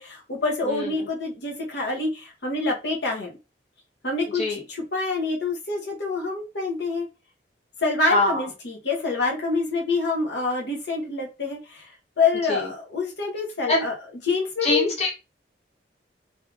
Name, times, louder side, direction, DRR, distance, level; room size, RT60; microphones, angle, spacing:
voice 1, 0.0-3.3 4.0-7.1 7.8-11.9 12.2-13.9 14.2-14.9, left 3 dB, 80° left, 0 dB, 0.9 m, -26 dB
voice 2, 0.7-1.0 4.3-4.6 8.1-8.4 12.5-12.7 13.7-13.8 14.6-15.1, left 2 dB, 40° left, -2 dB, 1.0 m, -24 dB
3.5 x 2.6 x 2.3 m, 0.27 s
head